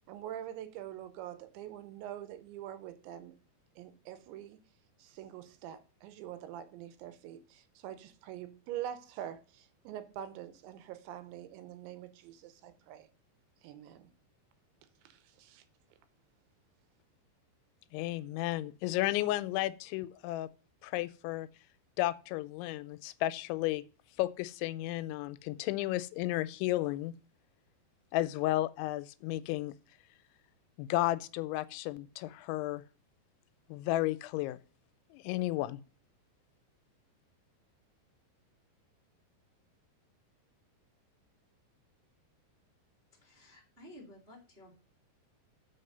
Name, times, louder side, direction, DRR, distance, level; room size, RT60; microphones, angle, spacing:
voice 1, 0.1-3.4 3.8-4.6 5.0-13.1 13.6-14.1 15.0-15.6, right 11 dB, 85° right, 3.1 m, -45 dB
voice 2, 17.9-20.5 20.8-21.5 22.0-23.8 24.2-27.1 28.1-29.7 30.8-32.8 33.7-34.6 35.1-35.8, left 16 dB, 90° left, 2.9 m, -33 dB
voice 3, 43.1-44.7, left 1 dB, 25° right, 1.3 m, -54 dB
7.7 x 5.4 x 6.7 m
omnidirectional pair, 5.2 m